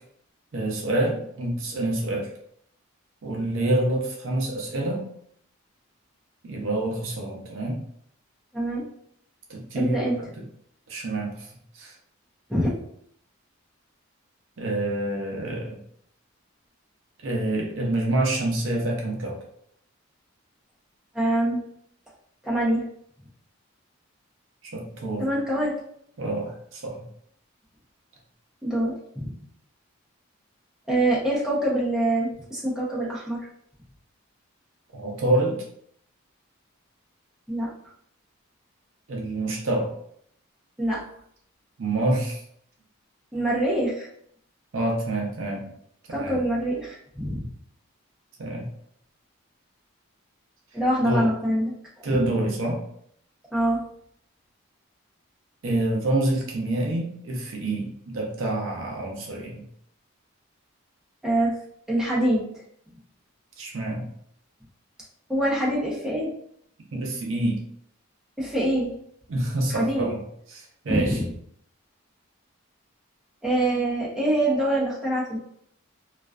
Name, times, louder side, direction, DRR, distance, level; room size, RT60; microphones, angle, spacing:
voice 1, 0.5-2.3 3.2-5.1 6.4-7.8 9.5-10.1 10.9-11.5 11.7-11.9 14.6-15.8 17.2-19.4 24.6-25.3 26.2-27.1 34.9-35.6 39.1-39.9 41.8-42.4 44.7-45.6 46.1-46.4 48.4-48.7 51.0-51.3 52.0-52.8 55.6-59.6 63.6-64.1 66.9-67.6 69.3-70.2 70.5-71.2, right 1 dB, 65° right, -1 dB, 0.5 m, -27 dB
voice 2, 8.5-8.9 9.7-10.2 12.5-12.8 21.1-21.6 22.4-22.8 25.2-25.8 28.6-29.3 30.9-33.4 37.5-37.7 40.8-41.0 43.3-44.1 46.1-47.5 50.7-52.2 53.5-53.8 61.2-61.6 61.9-62.5 65.3-66.3 68.4-69.0 69.7-70.1 70.9-71.2 73.4-75.4, right 1 dB, 5° right, -7 dB, 0.6 m, -25 dB
2.4 x 2.2 x 2.3 m, 0.68 s
head